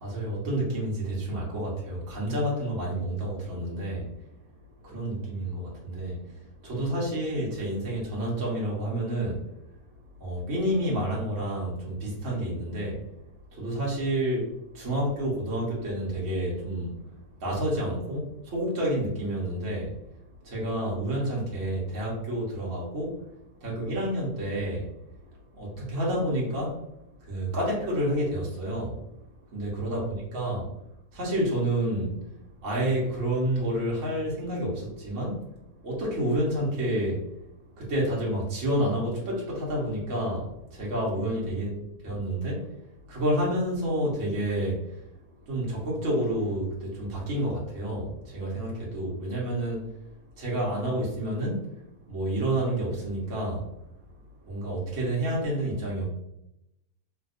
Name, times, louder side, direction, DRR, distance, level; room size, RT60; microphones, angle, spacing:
voice 1, 0.0-4.1 4.8-9.4 10.2-13.0 13.5-17.0 17.4-19.9 20.4-23.2 23.6-24.8 25.5-26.8 27.2-29.0 29.5-30.7 31.1-32.2 32.6-35.4 35.8-37.2 37.8-41.7 42.0-42.7 43.1-45.0 45.4-49.9 50.4-51.7 52.1-53.6 54.5-56.1, right 1 dB, 55° right, -5 dB, 1.4 m, -29 dB
3.5 x 2.6 x 2.4 m, 0.84 s
omnidirectional pair, 1.7 m